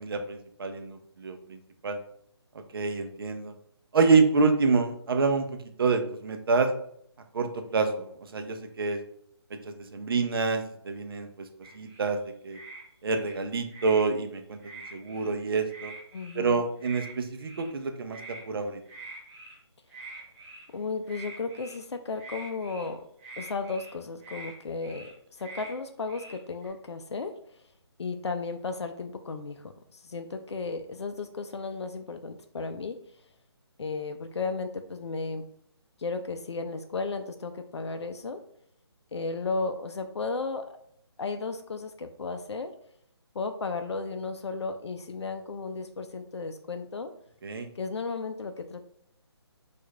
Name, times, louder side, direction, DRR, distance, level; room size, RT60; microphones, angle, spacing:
voice 1, 0.0-2.0 2.7-3.5 3.9-5.5 5.8-6.7 7.3-9.0 9.6-11.5 11.7-12.6 13.0-14.6 14.9-15.9 16.3-18.8 47.4-47.7, right 4 dB, 55° right, 6 dB, 0.5 m, -27 dB
sound 1, 11.6-12.1 12.5-12.8 13.1-14.0 14.6-15.3 15.7-16.4 16.8-17.1 17.4-17.7 18.1-18.4 18.8-19.6 19.9-20.7 21.1-21.8 22.2-22.9 23.2-23.9 24.2-24.5 24.8-25.1 25.4-25.7 26.1-26.7, right 2 dB, 10° right, 0.7 m, -45 dB
voice 2, 16.1-16.6 20.7-23.1 23.4-27.4 28.0-33.0 33.8-35.5 36.0-38.4 39.1-40.8 41.2-42.7 43.3-47.1 47.8-48.8, left 4 dB, 80° left, 7 dB, 0.4 m, -34 dB
4.5 x 2.4 x 2.3 m, 0.67 s
figure-of-eight pair, 155°, 14 cm